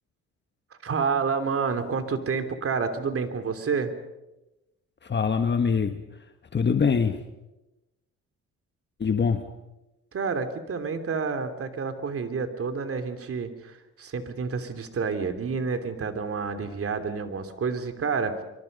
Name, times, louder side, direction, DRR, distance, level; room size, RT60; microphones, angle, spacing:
voice 1, 0.8-3.9 10.1-18.4, right 5 dB, 50° right, 8 dB, 3.1 m, -29 dB
voice 2, 5.0-6.0 6.5-7.2 9.0-9.4, left 6 dB, 35° left, 7 dB, 1.5 m, -23 dB
26.0 x 24.5 x 5.4 m, 0.98 s
cardioid pair, 90°, 30 cm